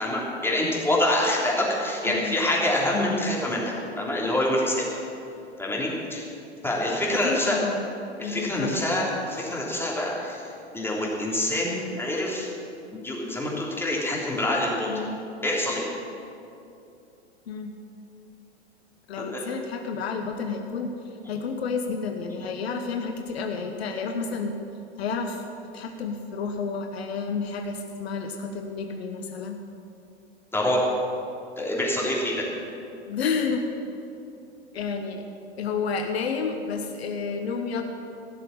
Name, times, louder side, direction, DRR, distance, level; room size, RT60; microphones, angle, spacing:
voice 1, 0.0-4.8 5.6-6.2 6.6-7.6 8.2-10.4 10.7-12.5 12.9-15.0 15.4-15.9 19.2-19.4 30.5-30.8 31.6-32.4, left 1 dB, 5° left, -4 dB, 3.3 m, -26 dB
voice 2, 2.0-2.4 7.1-7.9 8.2-8.9 14.9-15.2 17.5-17.7 19.1-20.9 21.3-24.6 25.0-25.4 25.7-29.6 33.1-33.7 34.7-35.2 35.6-37.8, left 5 dB, 70° left, 5 dB, 1.2 m, -30 dB
16.5 x 6.8 x 8.9 m, 2.8 s
hypercardioid pair, 100°, 33 cm